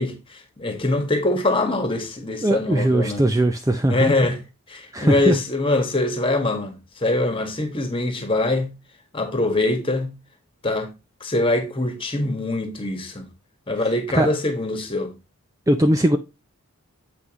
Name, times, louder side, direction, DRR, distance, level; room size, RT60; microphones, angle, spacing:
voice 1, 0.0-3.2 3.9-4.4 4.7-8.7 9.1-10.1 10.6-10.9 11.2-13.3 13.7-15.1, left 2 dB, 25° left, 1.6 m, -23 dB
voice 2, 2.4-4.1 4.9-5.4 14.1-14.3 15.7-16.2, right 1 dB, 15° right, 0.5 m, -19 dB
7.9 x 5.8 x 3.0 m
head